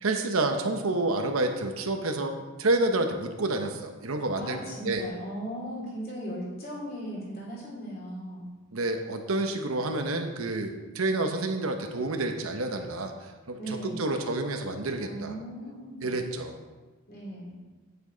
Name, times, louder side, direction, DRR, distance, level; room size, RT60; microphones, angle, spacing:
voice 1, 0.0-4.6 4.8-5.0 8.7-15.3 16.0-16.6, right 2 dB, 80° right, 5 dB, 1.0 m, -29 dB
voice 2, 4.4-8.5 13.6-14.1 15.0-16.1 17.1-17.6, equal, 45° left, -4 dB, 2.9 m, -37 dB
8.9 x 8.1 x 3.9 m, 1.2 s
head